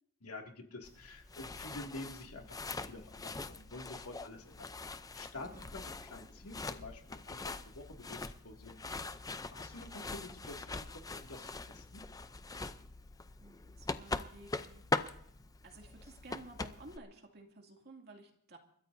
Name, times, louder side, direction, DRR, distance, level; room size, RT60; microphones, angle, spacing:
voice 1, 0.2-4.7 5.1-8.8 9.5-12.0, left 2 dB, 75° left, 2 dB, 2.4 m, -49 dB
sound 1, 0.8-17.0, left 3 dB, 15° left, 0.6 m, -42 dB
voice 2, 5.3-5.7 13.4-14.8 15.6-18.6, right 2 dB, 45° right, 2 dB, 2.5 m, -54 dB
29.5 x 14.0 x 2.7 m, 0.72 s
head